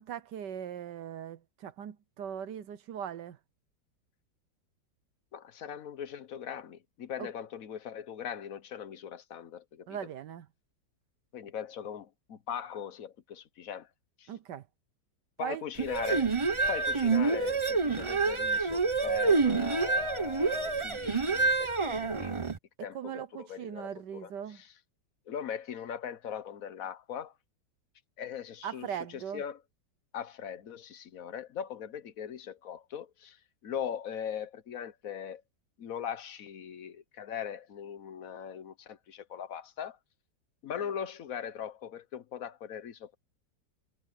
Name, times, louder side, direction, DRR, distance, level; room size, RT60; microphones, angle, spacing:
voice 1, 0.0-3.4 7.2-7.3 9.9-10.5 14.3-14.6 15.4-15.6 22.8-24.6 28.6-29.4, right 9 dB, 70° right, 1.4 m, -39 dB
voice 2, 5.3-10.0 11.3-13.9 14.2-14.3 15.4-16.3 16.7-22.4 22.8-24.7 25.3-27.3 28.2-29.6 30.1-33.4 33.6-35.4 35.8-40.0 40.6-43.2, left 8 dB, 55° left, 1.2 m, -40 dB
sound 1, 15.8-22.6, right 4 dB, 25° right, 0.8 m, -28 dB
omnidirectional pair, 1.9 m